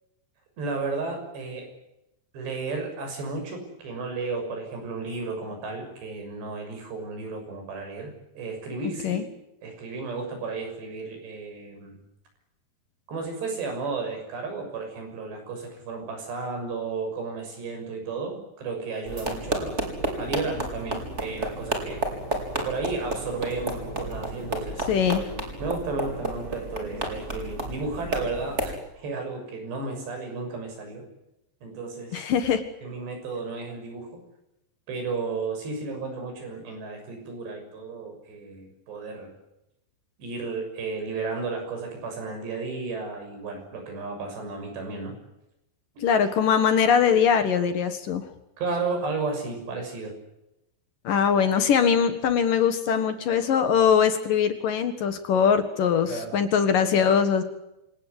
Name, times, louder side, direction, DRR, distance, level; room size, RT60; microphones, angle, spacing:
voice 1, 0.6-1.7 2.3-9.2 9.6-12.0 13.1-19.9 20.2-22.1 22.6-24.8 25.6-31.0 31.6-32.3 32.8-34.1 34.9-39.3 40.2-45.2 48.6-50.2 56.1-56.4, right 4 dB, 70° right, 4 dB, 8.7 m, -33 dB
sound 1, 19.1-28.8, right 1 dB, 15° right, 4.3 m, -32 dB
voice 2, 24.9-25.2 32.1-32.6 46.0-48.3 51.0-57.4, left 7 dB, 60° left, 9 dB, 2.8 m, -22 dB
27.0 x 19.0 x 8.1 m, 0.87 s
omnidirectional pair, 5.1 m